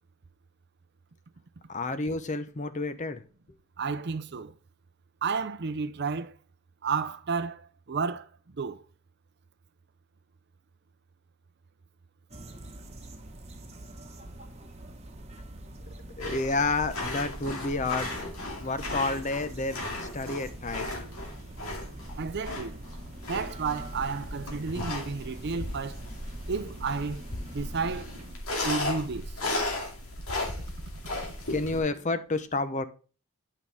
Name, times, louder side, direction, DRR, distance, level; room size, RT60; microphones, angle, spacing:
voice 1, 1.7-3.2 16.2-20.9 31.5-32.9, left 3 dB, 35° left, 0.7 m, -30 dB
voice 2, 3.8-4.5 5.2-6.3 6.8-8.8 22.2-22.8 23.3-26.1 26.5-28.1 28.6-29.4, right 5 dB, 50° right, 0.6 m, -32 dB
sound 1, 12.3-28.3, right 1 dB, 30° right, 1.2 m, -45 dB
sound 2, 16.2-31.8, left 2 dB, 75° left, 2.3 m, -36 dB
8.7 x 5.4 x 3.4 m
head